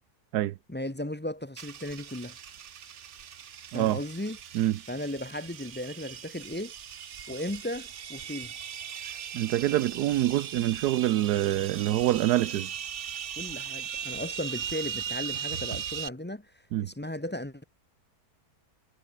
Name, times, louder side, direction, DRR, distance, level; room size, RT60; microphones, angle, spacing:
voice 1, 0.7-2.4 3.7-4.4 4.9-6.7 7.3-8.5 13.4-16.5 16.8-17.6, left 1 dB, 10° left, 0.7 m, -36 dB
sound 1, 1.6-16.1, right 8 dB, 50° right, 1.2 m, -39 dB
voice 2, 9.0-12.8 16.7-16.9, right 14 dB, 85° right, 1.2 m, -26 dB
omnidirectional pair, 1.7 m